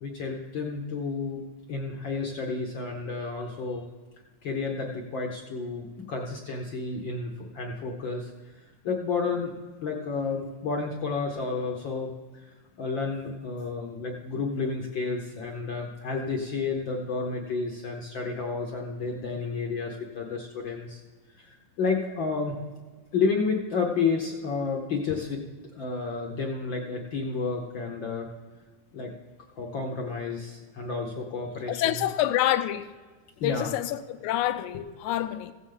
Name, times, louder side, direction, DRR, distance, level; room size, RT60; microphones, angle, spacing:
voice 1, 0.0-1.4 1.7-3.9 4.4-9.5 9.8-21.0 21.3-22.5 23.1-25.4 25.7-28.3 28.9-29.1 29.6-32.0 33.4-33.8 34.7-34.8, left 4 dB, 70° left, 1 dB, 1.1 m, -31 dB
voice 2, 31.7-32.9 33.4-35.5, left 13 dB, 90° left, 10 dB, 2.0 m, -27 dB
15.5 x 8.0 x 3.8 m, 1.4 s
omnidirectional pair, 3.3 m